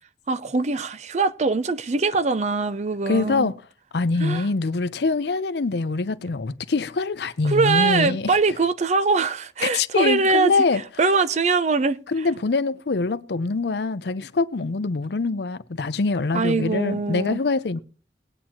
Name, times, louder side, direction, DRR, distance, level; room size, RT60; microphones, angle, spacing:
voice 1, 0.3-3.5 4.2-4.5 7.4-10.5 11.0-12.0 16.3-17.4, right 4 dB, 40° right, 0.5 m, -22 dB
voice 2, 3.1-3.5 3.9-8.3 9.6-10.8 12.1-17.8, left 3 dB, 70° left, 0.6 m, -24 dB
20.0 x 8.8 x 3.0 m
head